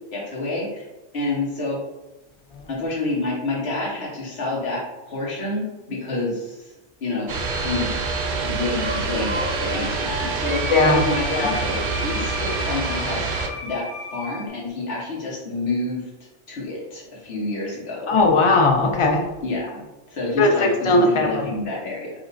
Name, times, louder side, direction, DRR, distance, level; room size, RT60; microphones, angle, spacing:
voice 1, 0.1-0.9 1.1-1.8 2.7-4.8 5.1-6.7 7.0-8.0 8.4-13.3 13.6-13.8 14.1-16.0 16.5-18.2 19.4-22.1, left 2 dB, 65° left, -5 dB, 1.4 m, -28 dB
sound 1, 7.3-13.5, right 4 dB, 55° right, 0.6 m, -26 dB
Wind instrument woodwind instrument, 8.8-14.5, left 1 dB, 10° left, 0.7 m, -33 dB
voice 2, 10.7-11.0 11.3-11.5 18.1-19.2 20.4-21.3, left 2 dB, 40° left, 2 dB, 0.4 m, -18 dB
4.8 x 2.6 x 2.6 m, 0.99 s
omnidirectional pair, 1.1 m